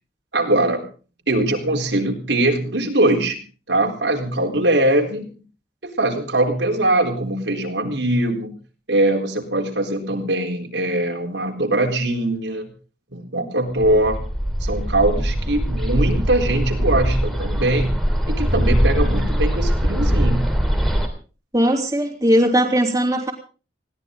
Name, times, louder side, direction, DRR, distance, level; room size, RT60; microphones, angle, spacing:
voice 1, 0.3-0.9 1.3-3.4 3.7-5.2 5.8-8.5 8.9-12.7 13.1-14.2 14.6-18.0 18.3-20.5, right 1 dB, 75° right, 1 dB, 4.0 m, -21 dB
Bird, 13.8-21.1, equal, ahead, 3.0 m, -21 dB
voice 2, 21.5-23.3, equal, 15° right, -1 dB, 3.5 m, -18 dB
21.0 x 17.0 x 3.9 m, 0.37 s
head